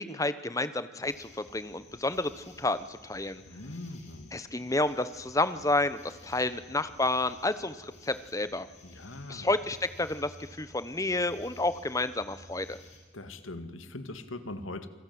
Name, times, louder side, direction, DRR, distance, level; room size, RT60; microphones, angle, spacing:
voice 1, 0.0-3.4 4.3-8.7 9.3-12.8, left 2 dB, 15° left, 12 dB, 1.0 m, -30 dB
sound 1, 1.0-13.0, left 1 dB, 35° left, 5.4 m, -54 dB
voice 2, 3.5-4.3 8.8-9.5 13.1-14.9, left 2 dB, 85° left, 9 dB, 2.1 m, -41 dB
28.0 x 20.0 x 9.5 m, 1.2 s
head